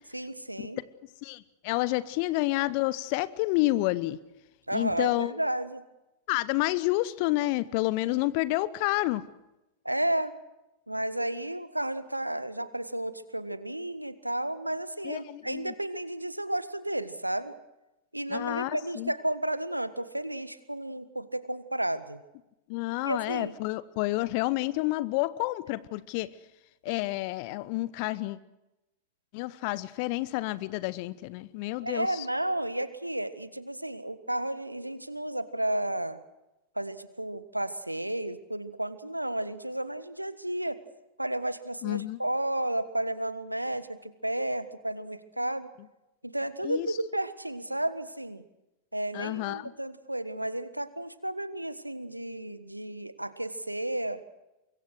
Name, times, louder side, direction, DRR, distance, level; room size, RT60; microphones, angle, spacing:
voice 1, 0.1-0.8 4.7-5.8 9.8-10.3 10.9-17.5 18.1-22.2 23.0-23.5 31.8-36.2 36.7-40.8 41.2-45.7 46.2-48.4 48.9-54.2, right 1 dB, 85° right, 15 dB, 1.4 m, -32 dB
voice 2, 1.2-4.2 4.7-5.3 6.3-9.2 15.0-15.7 18.3-19.1 22.7-26.3 26.8-28.4 29.3-32.2 41.8-42.2 46.6-46.9 49.1-49.7, left 19 dB, 45° left, 18 dB, 0.9 m, -29 dB
25.0 x 22.0 x 6.4 m, 0.96 s
figure-of-eight pair, 90°, 0 cm